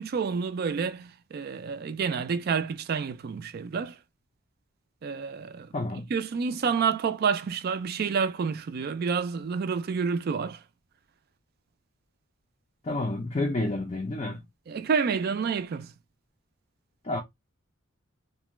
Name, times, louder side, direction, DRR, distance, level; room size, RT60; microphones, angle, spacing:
voice 1, 0.0-4.0 5.0-5.7 6.1-10.6 14.7-15.9, right 6 dB, 45° right, 0.3 m, -29 dB
voice 2, 5.7-6.1 12.8-14.4 17.0-17.2, left 2 dB, 30° left, 0.4 m, -29 dB
2.3 x 2.1 x 3.0 m
head